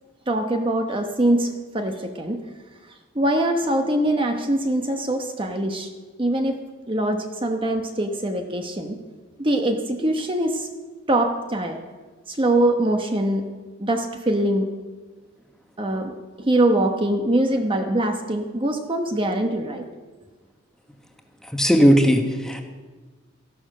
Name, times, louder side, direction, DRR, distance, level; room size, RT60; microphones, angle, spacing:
voice 1, 0.3-2.4 3.1-5.9 6.2-6.6 6.9-9.0 9.4-10.7 11.1-11.8 12.3-13.4 13.8-14.7 15.8-19.9, right 1 dB, 25° right, 4 dB, 1.0 m, -23 dB
voice 2, 21.5-22.6, equal, 5° left, 4 dB, 1.3 m, -17 dB
14.5 x 11.5 x 6.5 m, 1.3 s
head